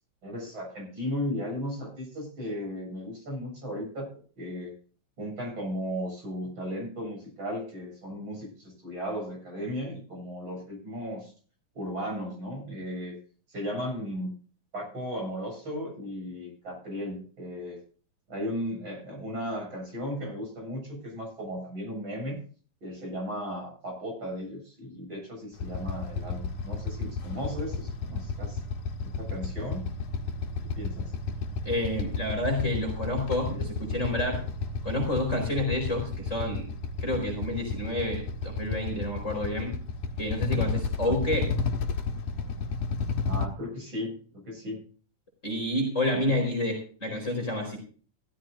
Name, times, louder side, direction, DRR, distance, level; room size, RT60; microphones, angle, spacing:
voice 1, 0.2-4.1 4.4-4.7 5.2-11.3 11.7-13.2 13.5-14.3 14.7-17.8 18.3-22.4 22.8-28.6 29.0-29.8 30.7-31.1 43.2-44.1 44.5-44.8 46.3-46.4, equal, 40° right, 0 dB, 8.3 m, -35 dB
Motorcycle / Idling, 25.6-43.5, left 4 dB, 85° left, 3.1 m, -32 dB
voice 2, 31.6-34.4 34.8-36.6 37.0-39.7 40.2-41.5 45.4-47.8, left 1 dB, 25° left, 1 dB, 4.7 m, -29 dB
16.0 x 14.5 x 2.6 m, 0.40 s
omnidirectional pair, 3.5 m